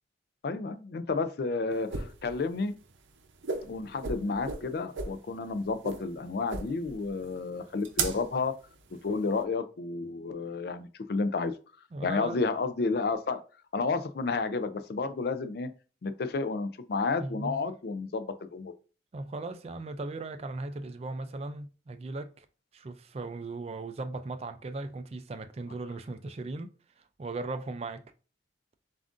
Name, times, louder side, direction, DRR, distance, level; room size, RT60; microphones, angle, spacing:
voice 1, 0.4-2.7 3.7-8.5 9.0-11.5 12.0-13.4 13.7-15.7 16.0-18.7, left 4 dB, 55° left, 0.4 m, -31 dB
sound 1, 1.7-9.4, right 4 dB, 85° right, 0.6 m, -37 dB
voice 2, 11.9-12.4 17.2-17.7 19.1-22.5 22.7-26.7 27.0-28.0, right 2 dB, 30° right, 0.3 m, -38 dB
7.0 x 2.5 x 2.5 m
head